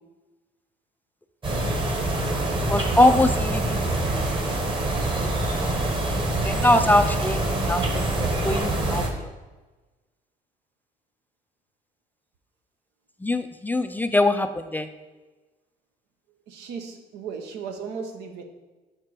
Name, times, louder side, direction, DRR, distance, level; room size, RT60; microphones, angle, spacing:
sound 1, 1.4-9.1, right 2 dB, 30° right, 1.1 m, -25 dB
voice 1, 2.6-3.8 4.1-4.2 6.4-9.3 13.2-14.9, left 1 dB, 10° left, 9 dB, 0.3 m, -22 dB
voice 2, 16.5-18.4, right 5 dB, 90° right, 5 dB, 0.9 m, -36 dB
5.9 x 4.5 x 4.7 m, 1.2 s
cardioid pair, 110°, 17 cm